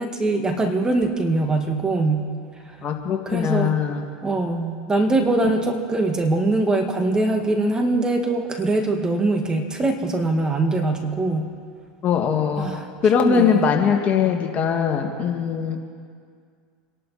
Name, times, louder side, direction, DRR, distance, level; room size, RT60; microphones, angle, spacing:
voice 1, 0.0-2.3 2.7-2.8 3.3-3.8 4.2-11.5 12.6-12.9 13.1-13.6 14.3-14.4, right 2 dB, 20° right, 4 dB, 2.1 m, -22 dB
voice 2, 2.8-4.1 5.4-5.5 12.0-12.7 13.0-15.8, left 7 dB, 40° left, 2 dB, 2.4 m, -21 dB
27.5 x 11.5 x 4.5 m, 2.1 s
hypercardioid pair, 95°, 4 cm